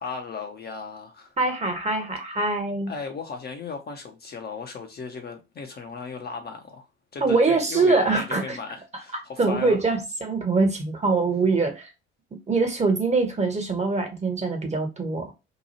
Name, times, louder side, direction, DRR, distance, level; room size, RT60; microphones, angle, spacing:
voice 1, 0.0-1.4 2.9-6.9 7.1-9.8, left 5 dB, 30° left, 0.6 m, -36 dB
voice 2, 1.4-2.9 7.2-8.6 8.9-11.9 12.5-15.3, right 3 dB, 20° right, 0.9 m, -23 dB
2.8 x 2.3 x 2.8 m
hypercardioid pair, 60°, 32 cm